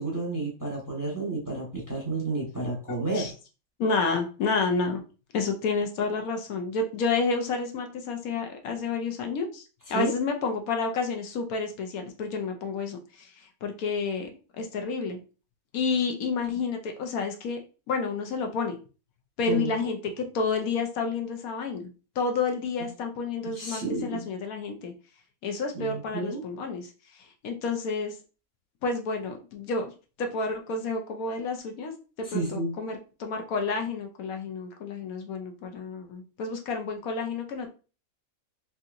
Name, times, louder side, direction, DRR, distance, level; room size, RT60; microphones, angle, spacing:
voice 1, 0.0-3.3 9.9-10.1 19.5-19.9 23.4-24.2 25.7-26.4 32.2-32.7, right 3 dB, 15° right, -3 dB, 0.8 m, -31 dB
voice 2, 3.8-5.0 5.3-9.6 9.9-14.3 14.6-15.2 15.7-17.6 17.9-18.8 19.4-21.9 22.2-24.9 25.4-26.9 27.2-28.1 28.8-29.9 30.2-31.9 32.2-37.7, left 4 dB, 75° left, 4 dB, 1.1 m, -30 dB
3.7 x 2.8 x 2.4 m, 0.34 s
omnidirectional pair, 1.5 m